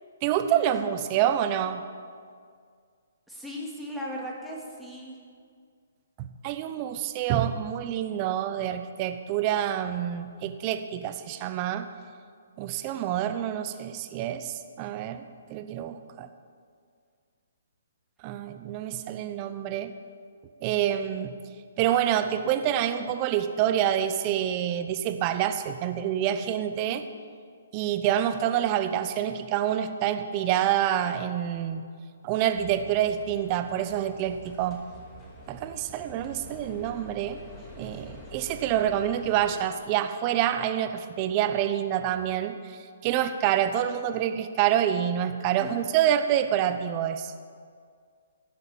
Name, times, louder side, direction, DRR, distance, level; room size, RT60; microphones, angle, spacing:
voice 1, 0.2-1.8 6.2-11.9 12.6-16.3 18.2-19.9 20.6-21.3 21.8-27.0 27.7-31.8 32.2-34.8 35.5-37.4 37.8-47.3, right 10 dB, 30° right, 9 dB, 0.8 m, -27 dB
voice 2, 3.3-5.1 45.6-45.9, equal, ahead, -3 dB, 2.0 m, -37 dB
sound 1, 32.5-39.6, left 1 dB, 15° left, 2.3 m, -47 dB
15.5 x 5.9 x 7.3 m, 2.1 s
hypercardioid pair, 140°, 0 cm